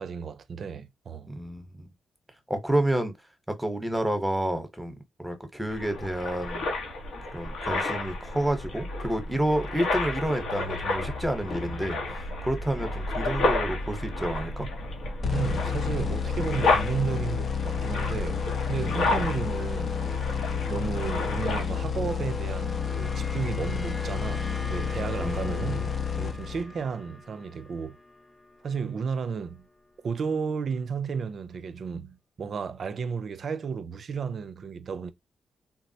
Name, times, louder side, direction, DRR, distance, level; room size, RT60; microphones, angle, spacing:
voice 1, 0.0-1.3 15.3-20.0 20.6-28.0 28.6-29.7 30.0-35.1, right 6 dB, 60° right, 0.4 m, -33 dB
voice 2, 1.3-1.9 2.5-3.1 3.6-6.7 7.3-12.0 12.4-14.7 18.9-19.0 25.2-25.9, right 1 dB, 10° right, 0.9 m, -29 dB
sound 1, 5.7-21.8, left 2 dB, 85° left, 1.0 m, -31 dB
sound 2, 15.2-26.9, left 6 dB, 55° left, 0.5 m, -30 dB
sound 3, 21.9-30.4, left 2 dB, 25° left, 0.8 m, -46 dB
3.6 x 2.0 x 2.7 m
cardioid pair, 65°, 0 cm